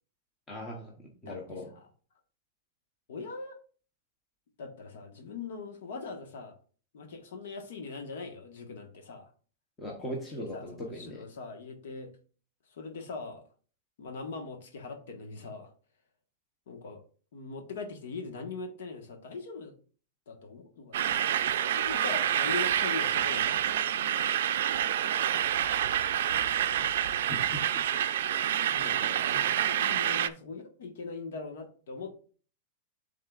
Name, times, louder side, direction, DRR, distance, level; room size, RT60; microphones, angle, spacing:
voice 1, 0.5-1.7 9.8-11.2 27.2-28.4 28.7-29.7, equal, 10° left, 0.8 m, -41 dB
voice 2, 1.2-1.9 3.1-3.6 4.6-6.6 6.9-9.3 10.5-12.1 12.7-13.4 14.0-15.7 16.7-17.0 17.3-19.7 20.3-21.1 21.7-24.4 28.3-28.4 28.7-32.1, left 4 dB, 70° left, 1.3 m, -41 dB
sound 1, 20.9-30.3, right 10 dB, 70° right, 0.4 m, -28 dB
11.0 x 3.7 x 2.4 m
supercardioid pair, 180°, 0 cm